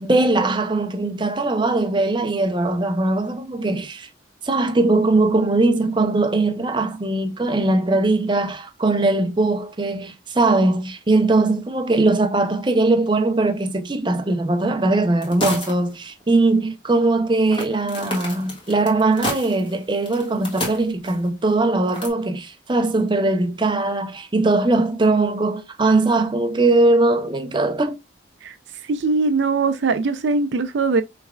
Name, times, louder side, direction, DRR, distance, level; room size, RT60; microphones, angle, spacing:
voice 1, 0.0-4.1 4.4-28.0, right 2 dB, 25° right, 0.5 m, -20 dB
sound 1, 15.2-16.0 16.2-16.3 17.5-21.3 21.9-22.1, left 1 dB, 25° left, 1.5 m, -30 dB
voice 2, 28.9-31.0, right 3 dB, 80° right, 0.4 m, -21 dB
5.5 x 3.3 x 2.3 m
head